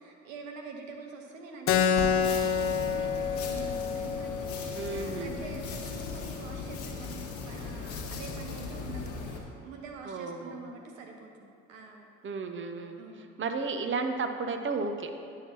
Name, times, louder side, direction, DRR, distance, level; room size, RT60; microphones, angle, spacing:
voice 1, 0.0-9.3 9.6-12.1 12.9-13.3, right 4 dB, 85° right, 2 dB, 0.7 m, -46 dB
Keyboard (musical), 1.7-6.8, left 7 dB, 35° left, 0.5 m, -29 dB
sound 1, 2.0-9.4, left 4 dB, 70° left, 1.1 m, -38 dB
voice 2, 4.7-5.4 10.0-10.7 12.2-13.0 13.4-15.1, right 4 dB, 30° right, 6 dB, 0.8 m, -33 dB
11.0 x 5.7 x 2.9 m, 2.5 s
hypercardioid pair, 50°, 39 cm